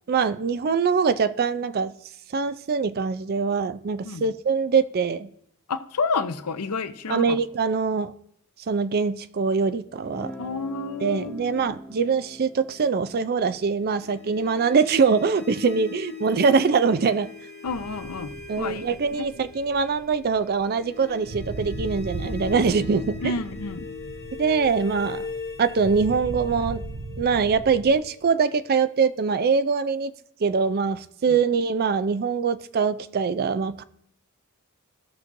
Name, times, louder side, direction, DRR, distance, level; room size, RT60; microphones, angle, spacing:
voice 1, 0.1-1.9 2.3-5.3 7.1-8.1 8.7-10.3 11.0-17.3 18.5-23.3 24.4-25.3 25.6-26.8 27.2-30.1 30.4-33.8, right 5 dB, 45° right, 0.4 m, -23 dB
voice 2, 5.7-7.4 10.4-11.7 17.6-18.9 19.2-19.3 23.2-23.9 31.3-31.4, left 4 dB, 90° left, 0.7 m, -30 dB
Guitar, 10.0-15.8, equal, 5° left, 1.6 m, -44 dB
sound 1, 13.8-28.7, left 5 dB, 50° left, 2.1 m, -40 dB
sound 2, 17.7-28.0, right 3 dB, 85° right, 0.7 m, -38 dB
17.0 x 6.1 x 2.6 m
head